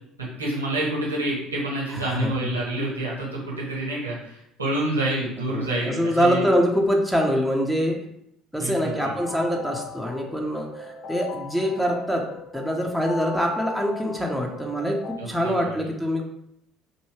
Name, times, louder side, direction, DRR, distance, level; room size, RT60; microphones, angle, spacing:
voice 1, 0.4-6.4 8.6-9.1 15.2-15.9, right 1 dB, 90° right, -4 dB, 1.4 m, -28 dB
voice 2, 1.9-2.3 5.5-8.0 8.5-12.2 12.5-16.2, equal, ahead, 0 dB, 0.9 m, -24 dB
sound 1, 9.2-15.2, left 4 dB, 45° left, 0.6 m, -38 dB
5.2 x 2.7 x 3.2 m, 0.75 s
figure-of-eight pair, 60°, 0 cm